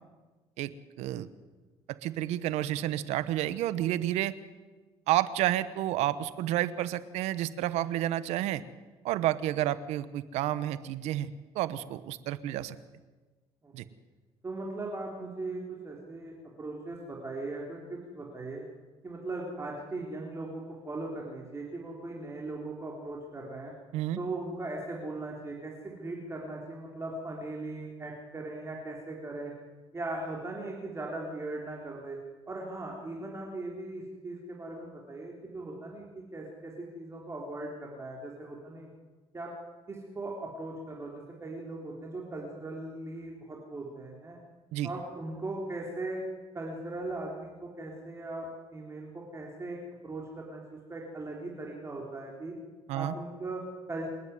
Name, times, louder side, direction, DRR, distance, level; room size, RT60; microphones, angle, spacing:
voice 1, 1.0-1.3 2.0-4.3 5.1-8.6 9.0-12.8 13.7-13.8 23.9-24.2 44.7-44.9 52.9-53.1, right 13 dB, 85° right, 16 dB, 1.0 m, -30 dB
voice 2, 14.4-18.6 19.0-23.7 24.2-29.5 29.9-32.2 32.5-38.9 39.3-39.5 39.9-44.4 44.8-46.2 46.5-49.8 50.0-52.5 52.9-54.1, right 2 dB, 25° right, -2 dB, 3.7 m, -39 dB
28.0 x 9.9 x 9.6 m, 1.3 s
cardioid pair, 100°, 11 cm